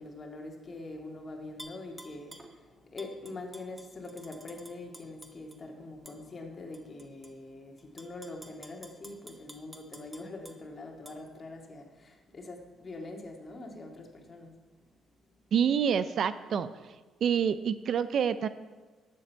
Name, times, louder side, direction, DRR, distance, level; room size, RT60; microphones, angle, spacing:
voice 1, 0.0-14.9 15.2-15.3, left 2 dB, 35° left, 2 dB, 1.8 m, -44 dB
Tap / Glass, 1.6-2.5 3.0-5.6 6.1-6.2 6.7-7.3 7.8-10.6 11.1-11.2, right 1 dB, 15° right, 1.2 m, -50 dB
voice 2, 15.5-16.9 17.2-18.5, right 7 dB, 60° right, 13 dB, 0.4 m, -27 dB
12.0 x 7.6 x 4.5 m, 1.3 s
cardioid pair, 90°, 0 cm